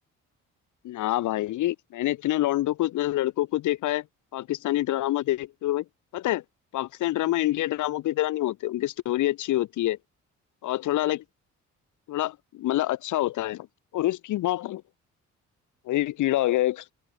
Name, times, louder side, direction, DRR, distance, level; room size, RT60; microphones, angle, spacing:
voice 1, 0.8-4.0 4.3-5.8 6.1-6.4 6.7-10.0 10.6-11.2 12.1-13.7 13.9-14.8 15.9-16.8, left 15 dB, 80° left, 1.2 m, -26 dB
open air
cardioid pair, 90°, 30 cm